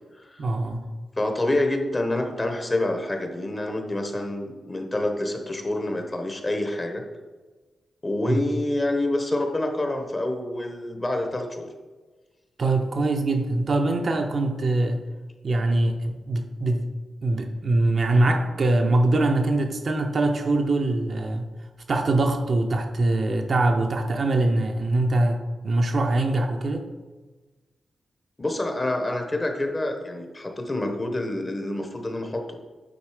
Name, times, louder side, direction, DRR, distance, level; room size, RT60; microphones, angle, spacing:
voice 1, 0.4-0.8 8.3-8.4 12.6-15.0 15.4-16.9 17.2-21.5 21.9-26.9, right 2 dB, 45° right, 4 dB, 0.6 m, -23 dB
voice 2, 1.2-7.0 8.0-11.7 28.4-32.5, left 1 dB, 20° left, 4 dB, 0.8 m, -27 dB
8.7 x 3.7 x 4.9 m, 1.3 s
wide cardioid pair, 130°, 0 cm